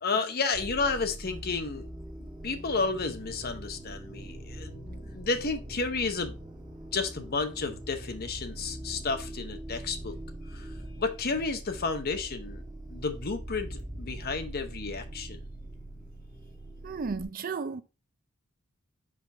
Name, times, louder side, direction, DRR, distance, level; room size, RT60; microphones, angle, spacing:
voice 1, 0.0-1.9 2.4-6.4 6.9-10.2 10.4-12.6 12.9-15.4, left 4 dB, 45° left, 0.9 m, -32 dB
sound 1, 0.5-17.2, right 1 dB, 20° right, 1.2 m, -42 dB
voice 2, 16.8-17.8, right 4 dB, 40° right, 0.5 m, -33 dB
5.7 x 5.0 x 3.3 m
head